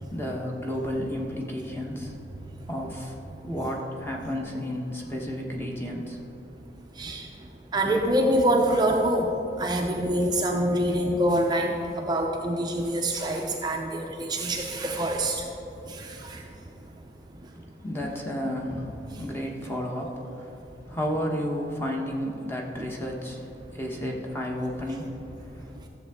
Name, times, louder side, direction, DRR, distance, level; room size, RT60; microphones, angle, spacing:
voice 1, 0.1-2.2 2.7-3.1 3.4-6.2 17.5-20.5 20.9-23.5 23.7-25.7, equal, 15° left, 0 dB, 1.0 m, -32 dB
voice 2, 7.0-7.3 7.7-9.3 9.6-15.5 15.9-16.4, right 1 dB, 25° right, 1 dB, 0.5 m, -25 dB
13.0 x 7.3 x 3.5 m, 2.9 s
head